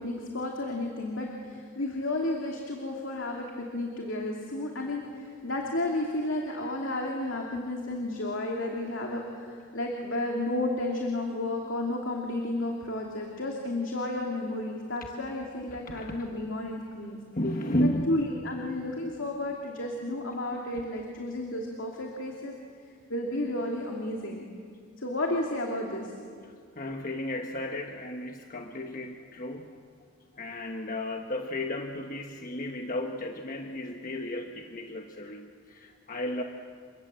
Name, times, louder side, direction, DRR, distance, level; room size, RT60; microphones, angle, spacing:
voice 1, 0.0-3.5 3.7-17.2 17.8-22.5 23.1-24.4 25.0-26.1, left 1 dB, 65° left, 0 dB, 2.8 m, -32 dB
voice 2, 15.9-16.3 17.3-18.3 26.4-29.8 30.3-36.4, left 1 dB, 40° left, 3 dB, 1.3 m, -33 dB
30.0 x 25.5 x 7.8 m, 2.2 s
head